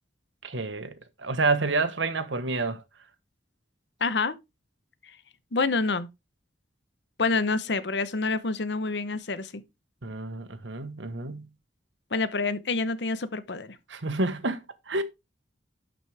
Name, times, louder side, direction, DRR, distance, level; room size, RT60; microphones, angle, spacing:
voice 1, 0.4-2.8 10.0-11.5 13.9-15.0, right 3 dB, 85° right, 1.2 m, -29 dB
voice 2, 4.0-4.3 5.5-6.1 7.2-9.6 12.1-13.8, left 3 dB, 65° left, 0.9 m, -27 dB
11.5 x 6.3 x 3.4 m
head